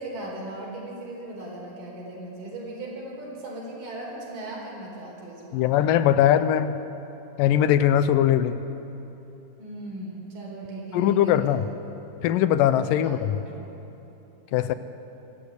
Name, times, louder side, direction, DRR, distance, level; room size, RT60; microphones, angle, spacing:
voice 1, 0.0-5.8 9.6-11.6 13.0-13.7, right 1 dB, 70° right, -2 dB, 5.8 m, -38 dB
voice 2, 5.5-6.8 7.4-8.6 10.9-11.6 12.2-13.4 14.5-14.7, left 11 dB, 85° left, 13 dB, 2.3 m, -21 dB
24.0 x 13.5 x 8.3 m, 3.0 s
omnidirectional pair, 4.0 m